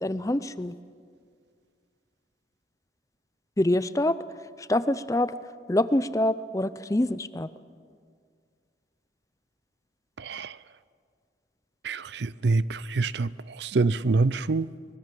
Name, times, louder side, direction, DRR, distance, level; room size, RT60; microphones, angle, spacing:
voice 1, 0.0-0.7 3.6-4.2 4.6-5.3 5.7-7.5, left 1 dB, 15° left, 15 dB, 0.5 m, -25 dB
voice 2, 10.2-10.6 11.8-14.7, right 3 dB, 65° right, 18 dB, 0.5 m, -26 dB
24.5 x 20.0 x 7.6 m, 2.1 s
head